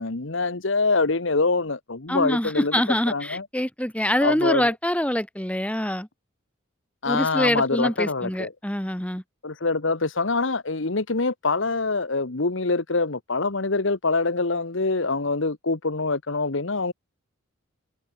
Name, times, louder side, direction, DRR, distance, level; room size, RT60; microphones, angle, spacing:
voice 1, 0.0-2.8 3.1-3.5 4.2-4.7 7.0-8.5 9.4-16.9, left 3 dB, 65° left, 1.3 m, -25 dB
voice 2, 2.1-6.1 7.1-9.2, left 1 dB, 5° left, 1.9 m, -25 dB
head